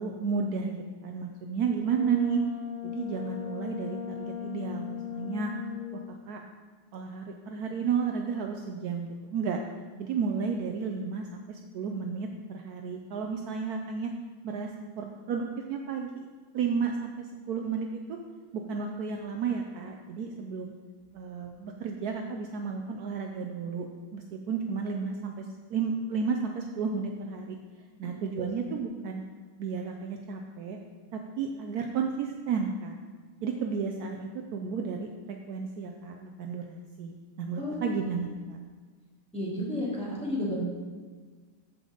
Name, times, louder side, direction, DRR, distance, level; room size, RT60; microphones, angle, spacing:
voice 1, 0.0-2.4 2.8-5.5 5.9-6.4 6.9-9.6 10.0-14.1 14.4-14.7 15.0-16.3 16.5-18.2 18.7-20.7 21.1-27.6 28.0-29.2 29.6-30.8 31.1-33.0 33.4-35.1 35.5-38.6, right 5 dB, 80° right, 3 dB, 0.8 m, -32 dB
Brass instrument, 1.7-6.0, left 10 dB, 50° left, 3.6 m, -38 dB
voice 2, 37.6-37.9 39.3-40.5, left 1 dB, 5° left, -8 dB, 2.7 m, -32 dB
14.0 x 5.1 x 3.9 m, 1.4 s
omnidirectional pair, 2.3 m